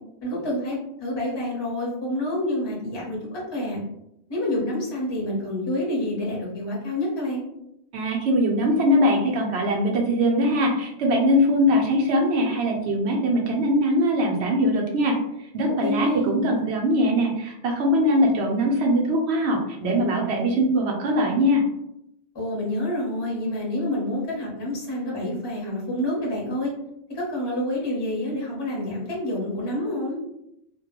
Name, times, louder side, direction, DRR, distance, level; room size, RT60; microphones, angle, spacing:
voice 1, 0.2-3.8 4.3-7.4 15.8-16.5 22.3-26.7 27.1-30.2, left 1 dB, 25° left, -4 dB, 0.7 m, -28 dB
voice 2, 7.9-15.2 15.5-21.6, equal, 65° right, 0 dB, 0.8 m, -21 dB
2.2 x 2.1 x 2.8 m, 0.80 s
omnidirectional pair, 1.3 m